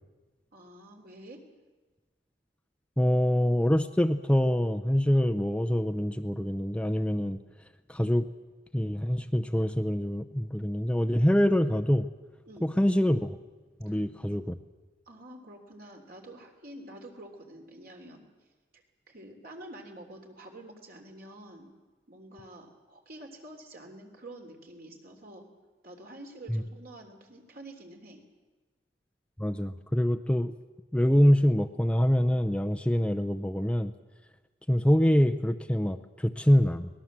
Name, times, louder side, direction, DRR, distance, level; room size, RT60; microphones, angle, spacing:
voice 1, 0.5-1.4 12.4-12.7 13.8-14.0 15.1-18.2 18.7-21.7 22.1-25.5 25.8-28.2, right 1 dB, 55° right, 3 dB, 3.4 m, -48 dB
voice 2, 3.0-7.4 7.9-8.3 8.7-12.1 12.6-13.4 13.8-14.6 26.5-26.6 29.4-30.5 30.9-33.9 34.7-36.9, equal, 5° left, 7 dB, 0.6 m, -25 dB
23.0 x 19.5 x 7.5 m, 1.3 s
head